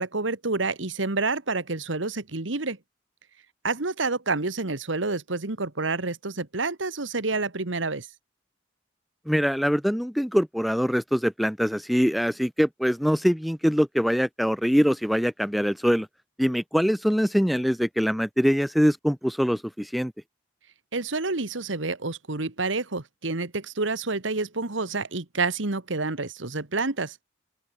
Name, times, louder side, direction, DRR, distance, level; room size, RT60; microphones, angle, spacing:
voice 1, 0.0-2.8 3.6-8.1 20.9-27.2, right 3 dB, 75° right, 1.8 m, -28 dB
voice 2, 9.3-16.1 16.4-20.1, equal, ahead, 0.6 m, -23 dB
open air
head